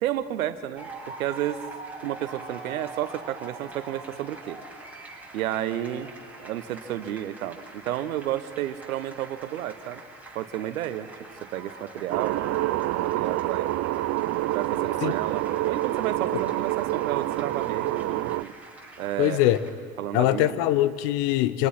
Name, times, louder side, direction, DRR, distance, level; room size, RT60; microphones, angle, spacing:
voice 1, 0.0-1.6 2.0-4.6 5.3-6.1 6.4-10.0 10.3-11.1 11.5-13.7 14.5-18.5 19.0-19.4 20.0-20.6, right 12 dB, 75° right, 13 dB, 1.2 m, -31 dB
sound 1, 0.8-19.7, right 2 dB, 5° right, 7.6 m, -44 dB
sound 2, 12.1-18.4, right 16 dB, 40° right, 0.5 m, -27 dB
voice 2, 19.2-19.6 20.1-21.7, left 14 dB, 60° left, 15 dB, 1.2 m, -22 dB
27.5 x 26.0 x 5.9 m, 2.1 s
hypercardioid pair, 65°, 42 cm